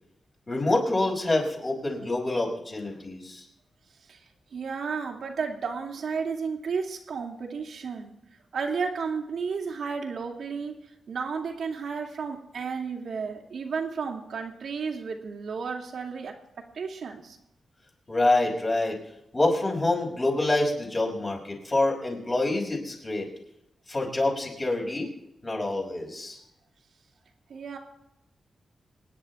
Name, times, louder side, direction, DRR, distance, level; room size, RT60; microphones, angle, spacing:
voice 1, 0.5-3.5 18.1-19.0 19.3-23.3 23.9-25.1 25.4-26.4, left 2 dB, 25° left, -1 dB, 5.3 m, -26 dB
voice 2, 4.5-8.2 8.5-10.8 11.1-16.4 16.7-17.4 27.5-27.8, right 5 dB, 75° right, 2 dB, 2.5 m, -32 dB
26.0 x 10.5 x 3.6 m, 0.85 s
wide cardioid pair, 130°, 0 cm